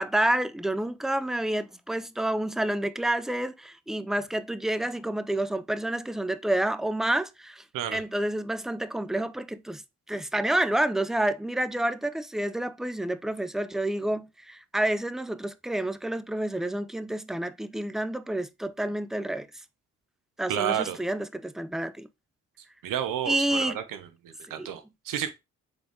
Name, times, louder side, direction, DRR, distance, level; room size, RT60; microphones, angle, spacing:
voice 1, 0.0-7.6 7.9-9.8 10.1-19.5 20.4-22.1 23.3-23.8 24.6-24.7, right 1 dB, ahead, 0.3 m, -29 dB
voice 2, 20.5-21.0 22.8-25.3, right 10 dB, 75° right, 0.8 m, -31 dB
3.9 x 3.5 x 3.4 m
supercardioid pair, 55°, 33 cm